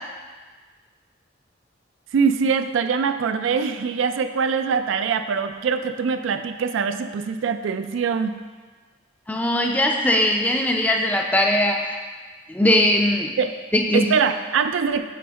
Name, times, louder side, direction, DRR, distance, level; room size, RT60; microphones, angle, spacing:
voice 1, 2.1-8.3 13.4-13.5 13.9-15.0, right 6 dB, 80° right, 9 dB, 0.3 m, -23 dB
voice 2, 9.3-12.0 12.5-13.4 13.7-14.1, left 1 dB, 10° left, 2 dB, 0.4 m, -20 dB
5.6 x 4.2 x 5.1 m, 1.4 s
head